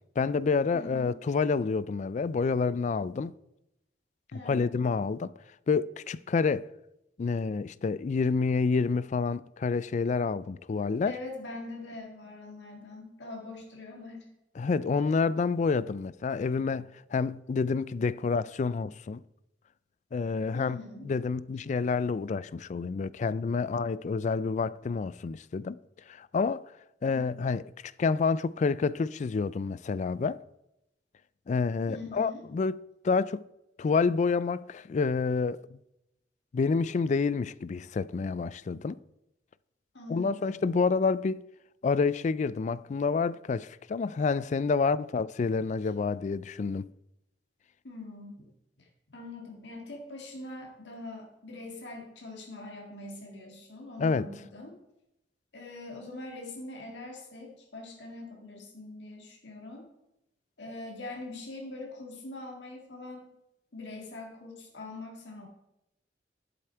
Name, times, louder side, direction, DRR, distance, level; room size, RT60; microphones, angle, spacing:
voice 1, 0.2-3.3 4.3-5.3 5.7-6.7 7.2-11.2 14.6-19.2 20.1-20.8 21.0-25.8 26.1-26.7 27.0-27.6 28.0-30.4 31.5-33.4 33.8-35.8 36.5-39.0 40.1-41.4 41.8-46.9 54.0-54.3, left 4 dB, 40° left, 0.3 m, -28 dB
voice 2, 0.7-1.2 4.3-4.8 11.1-14.3 20.5-21.1 27.0-27.5 31.9-32.4 39.9-40.7 47.8-48.5 48.8-54.8 55.5-59.9 60.6-63.3 63.7-65.5, left 2 dB, 75° left, 1.9 m, -43 dB
11.0 x 7.8 x 4.6 m
head